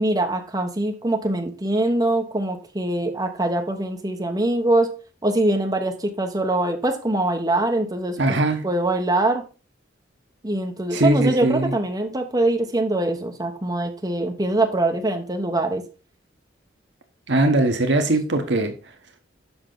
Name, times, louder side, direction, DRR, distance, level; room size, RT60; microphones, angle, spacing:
voice 1, 0.0-4.9 5.2-8.2 8.6-9.4 10.4-15.8, right 2 dB, 20° right, 1.0 m, -23 dB
voice 2, 8.2-8.6 10.9-11.7 17.3-18.7, right 2 dB, 65° right, 1.0 m, -20 dB
7.1 x 5.6 x 3.8 m
head